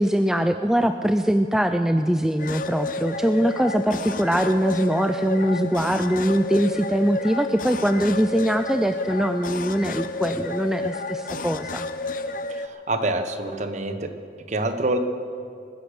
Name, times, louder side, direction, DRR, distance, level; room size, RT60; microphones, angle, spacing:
voice 1, 0.0-11.9, equal, 5° right, 8 dB, 0.3 m, -22 dB
sound 1, 2.4-12.7, left 2 dB, 50° left, 0.6 m, -31 dB
voice 2, 12.6-14.1 14.5-15.0, right 2 dB, 40° right, 8 dB, 1.1 m, -26 dB
20.5 x 10.5 x 6.4 m, 2.5 s
head